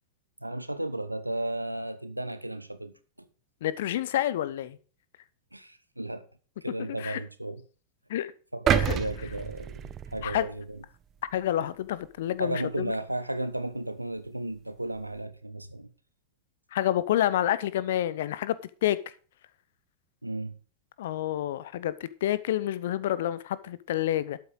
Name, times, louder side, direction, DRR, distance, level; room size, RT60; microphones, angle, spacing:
voice 1, 0.4-2.9 5.5-6.3 6.6-7.6 8.5-10.8 12.4-15.9 20.2-20.6, right 1 dB, 85° right, 1.0 m, -34 dB
voice 2, 3.6-4.8 7.0-7.2 8.1-8.3 8.7-9.0 10.2-10.5 11.3-12.9 16.7-18.6 18.8-19.0 21.0-24.4, left 12 dB, 55° left, 0.8 m, -28 dB
sound 1, 8.7-10.8 11.3-11.4, right 10 dB, 30° right, 0.6 m, -29 dB
12.5 x 8.5 x 3.9 m
figure-of-eight pair, 90°, 0 cm